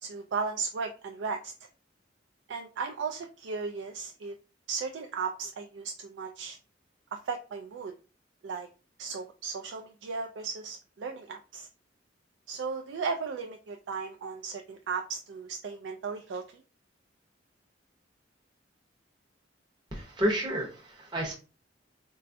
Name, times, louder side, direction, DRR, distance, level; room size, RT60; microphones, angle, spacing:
voice 1, 0.0-1.5 2.5-4.4 4.7-6.6 7.1-7.9 8.4-8.7 9.0-11.7 12.5-16.6, right 5 dB, 70° right, 4 dB, 0.3 m, -36 dB
voice 2, 19.9-21.3, equal, 25° right, -3 dB, 0.7 m, -30 dB
4.0 x 2.3 x 2.5 m, 0.33 s
head